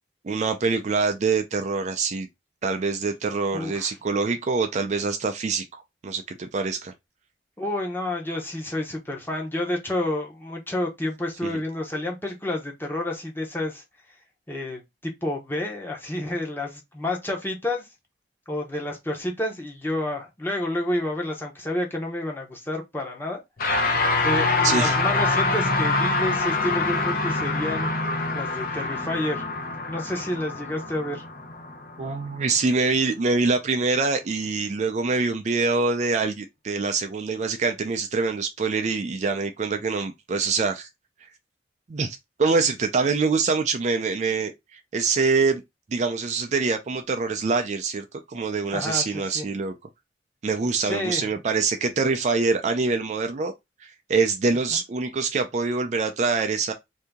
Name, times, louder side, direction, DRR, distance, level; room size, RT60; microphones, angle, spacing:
voice 1, 0.2-2.3 2.6-6.9 11.5-11.6 24.6-25.0 32.0-40.9 41.9-45.6 45.9-49.7 50.4-53.5 53.8-56.7, right 4 dB, 40° right, 0.4 m, -25 dB
voice 2, 3.5-4.0 7.6-13.8 14.5-17.9 18.5-23.4 24.2-27.9 28.3-29.5 29.9-31.2 48.7-49.5 50.8-51.3, left 1 dB, 10° left, 0.8 m, -29 dB
sound 1, 23.6-33.1, left 3 dB, 50° left, 0.7 m, -25 dB
2.7 x 2.7 x 3.4 m
head